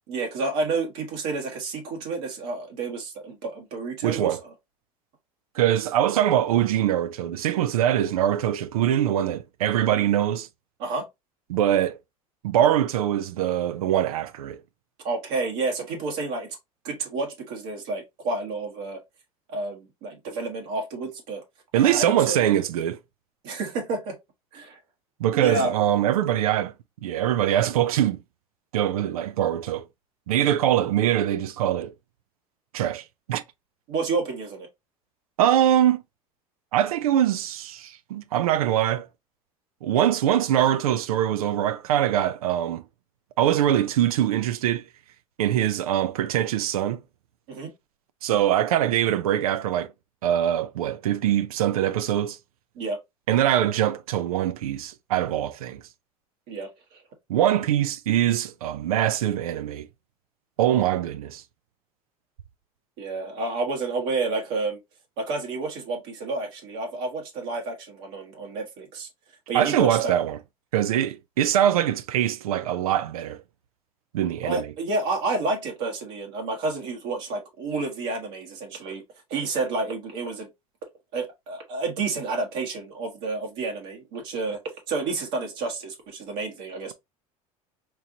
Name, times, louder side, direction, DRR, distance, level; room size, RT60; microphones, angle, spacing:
voice 1, 0.1-4.5 10.8-11.1 15.0-16.6 16.8-19.0 19.5-21.4 21.7-22.4 23.4-24.2 24.5-24.8 25.3-25.7 33.9-34.7 47.5-47.7 52.8-53.0 56.5-57.0 63.0-64.8 65.2-69.1 69.5-70.1 74.4-79.0 79.3-80.5 81.1-84.6 84.9-86.9, right 3 dB, 65° right, 1.3 m, -30 dB
voice 2, 4.0-4.4 5.6-10.5 11.5-12.0 12.4-14.6 21.7-23.0 25.2-26.7 27.0-28.2 28.7-29.9 30.3-31.9 32.7-33.4 35.4-36.0 36.7-39.1 39.8-42.8 43.4-44.8 45.4-47.0 48.2-49.9 50.2-52.4 53.3-55.8 57.3-59.9 60.6-61.4 69.5-70.4 70.7-73.4 74.1-74.7, right 11 dB, 85° right, 0.4 m, -23 dB
4.5 x 2.6 x 2.7 m
hypercardioid pair, 80°, 18 cm